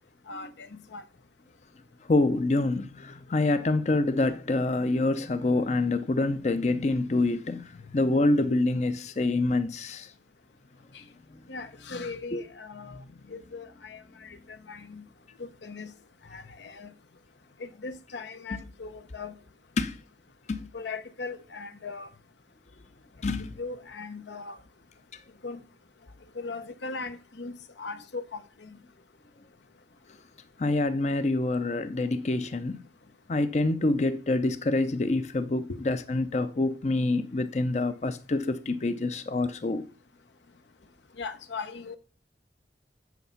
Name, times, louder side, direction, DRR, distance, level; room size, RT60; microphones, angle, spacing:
voice 1, 0.3-1.0 10.9-11.0 11.5-13.0 13.3-15.0 15.4-15.9 16.3-16.9 17.6-19.3 20.7-22.1 23.2-24.6 25.4-25.6 26.3-28.8 35.7-35.8 41.2-42.0, left 4 dB, 85° left, 0.9 m, -39 dB
voice 2, 2.0-10.1 12.3-12.4 12.9-13.1 18.5-18.6 19.8-20.0 20.5-20.7 23.2-23.6 30.6-32.8 33.3-39.9, left 2 dB, 40° left, 0.5 m, -26 dB
8.1 x 7.0 x 5.6 m
head